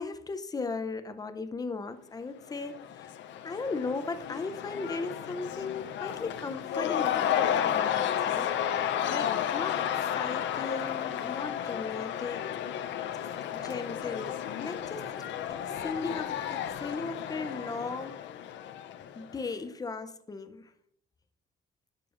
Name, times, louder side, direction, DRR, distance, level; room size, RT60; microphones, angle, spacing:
voice 1, 0.0-3.1 3.4-8.8 9.1-12.5 13.2-18.3 19.1-20.7, left 4 dB, 20° left, 0.6 m, -37 dB
Cheering / Crowd, 2.5-19.4, left 10 dB, 80° left, 0.6 m, -32 dB
12.0 x 6.7 x 2.5 m
cardioid pair, 115°, 19 cm